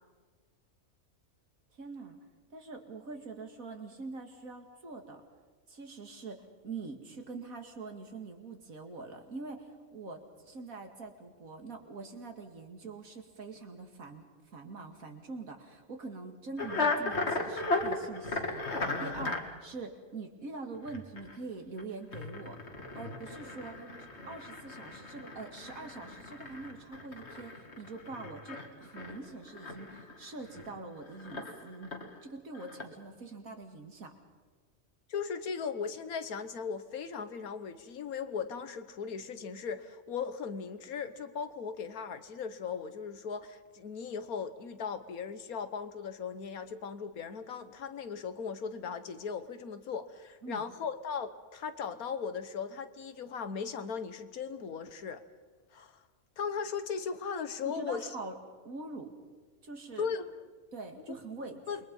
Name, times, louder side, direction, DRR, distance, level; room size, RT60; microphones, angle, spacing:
voice 1, 1.8-2.2 2.5-5.2 5.7-22.6 22.9-23.8 24.3-32.0 32.2-34.1 50.4-50.6 57.6-58.4 58.6-59.1 59.6-60.1 60.7-61.6, right 3 dB, 75° right, 4 dB, 2.6 m, -44 dB
sound 1, 16.6-19.4 20.7-21.4 21.8-21.9 22.1-30.8 31.0-32.2 32.5-32.8, left 3 dB, 50° left, 2.3 m, -36 dB
voice 2, 35.1-55.2 55.7-56.0 56.4-58.2 60.0-60.5 61.7-61.8, left 6 dB, 90° left, 11 dB, 1.7 m, -38 dB
28.0 x 22.5 x 5.5 m, 1.5 s
omnidirectional pair, 1.5 m